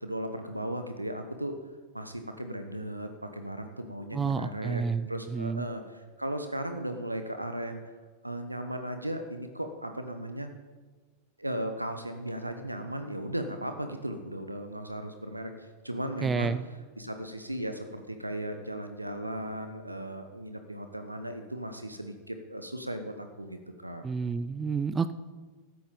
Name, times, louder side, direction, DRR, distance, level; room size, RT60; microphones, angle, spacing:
voice 1, 0.0-1.6 1.9-4.8 5.1-7.8 8.2-10.5 11.4-15.5 15.8-16.5 17.0-24.0, right 1 dB, 85° right, 7 dB, 1.0 m, -36 dB
voice 2, 4.1-5.1 5.3-5.6 16.2-16.6 24.0-25.1, right 5 dB, 15° right, 13 dB, 0.5 m, -29 dB
16.0 x 13.0 x 3.9 m, 1.4 s
figure-of-eight pair, 90°, 0 cm